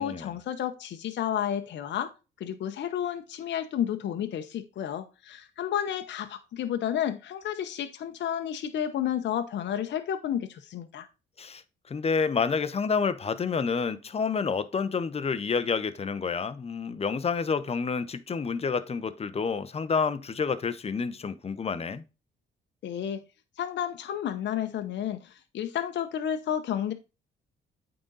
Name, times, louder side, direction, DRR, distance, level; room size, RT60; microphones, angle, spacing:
voice 1, 0.0-2.1 2.4-11.1 22.8-23.2 23.6-26.9, left 10 dB, 65° left, 0.8 m, -31 dB
voice 2, 11.9-22.0, left 5 dB, 30° left, 0.7 m, -29 dB
8.7 x 3.9 x 3.9 m
cardioid pair, 90°, 20 cm